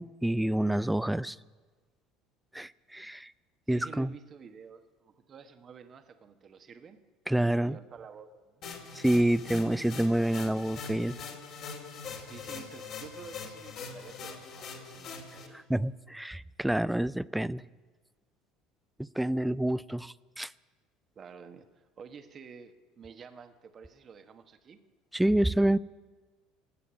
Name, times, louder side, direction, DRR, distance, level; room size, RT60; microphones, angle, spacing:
voice 1, 0.0-1.4 2.5-3.3 3.7-4.1 7.3-7.8 8.9-11.2 15.5-17.6 19.0-20.5 25.1-25.8, right 1 dB, 5° right, 19 dB, 0.4 m, -28 dB
voice 2, 3.7-7.0 7.6-8.6 12.3-15.6 21.1-24.8, right 6 dB, 35° right, 8 dB, 1.3 m, -50 dB
sound 1, 8.6-15.5, left 5 dB, 50° left, 2.7 m, -42 dB
17.0 x 8.5 x 9.9 m, 1.3 s
figure-of-eight pair, 65°, 0 cm